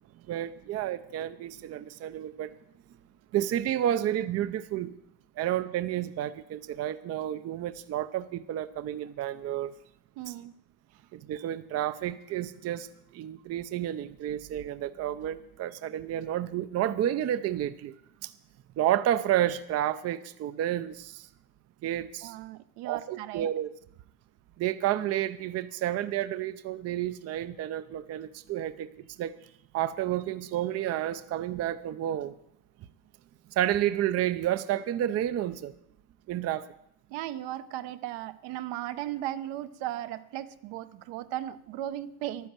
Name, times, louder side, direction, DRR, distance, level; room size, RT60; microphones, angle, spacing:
voice 1, 0.3-2.5 3.3-4.9 5.4-9.7 10.3-10.4 11.1-12.9 13.1-17.9 18.2-18.3 18.8-21.3 21.8-22.3 22.8-23.7 24.6-28.9 29.2-29.3 29.7-32.4 33.5-35.7 36.3-36.7, right 12 dB, 35° right, 12 dB, 0.5 m, -30 dB
voice 2, 10.2-10.5 22.2-23.5 37.1-42.5, right 13 dB, 70° right, 12 dB, 0.9 m, -36 dB
11.5 x 10.0 x 7.4 m, 0.77 s
cardioid pair, 125°, 44 cm